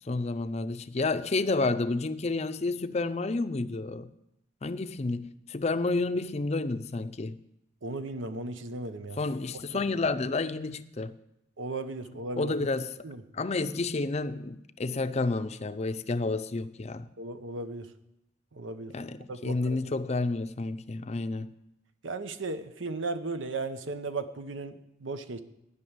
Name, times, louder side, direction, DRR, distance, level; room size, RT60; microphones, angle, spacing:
voice 1, 0.1-4.1 4.6-7.4 9.2-11.2 12.4-13.1 13.3-17.1 18.9-21.5, left 3 dB, 35° left, 0.5 m, -30 dB
voice 2, 7.8-9.2 9.5-9.6 11.6-12.5 13.0-13.2 17.2-17.9 18.5-18.9 19.3-19.8 22.0-25.4, right 3 dB, 90° right, 0.9 m, -36 dB
12.0 x 6.1 x 9.5 m
head